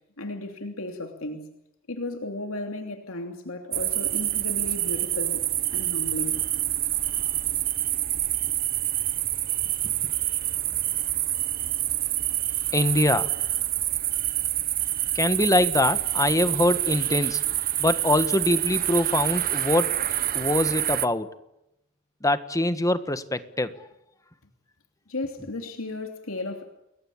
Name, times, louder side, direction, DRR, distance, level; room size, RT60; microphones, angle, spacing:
voice 1, 0.2-1.5 1.9-5.4 5.7-6.4 25.1-26.7, left 2 dB, 75° left, 2.9 m, -34 dB
sound 1, 3.7-21.1, right 13 dB, 45° right, 1.1 m, -27 dB
voice 2, 12.7-13.3 15.1-17.4 17.8-19.9 20.3-21.3 22.2-23.7, left 1 dB, 15° left, 1.4 m, -23 dB
29.0 x 22.0 x 8.6 m
head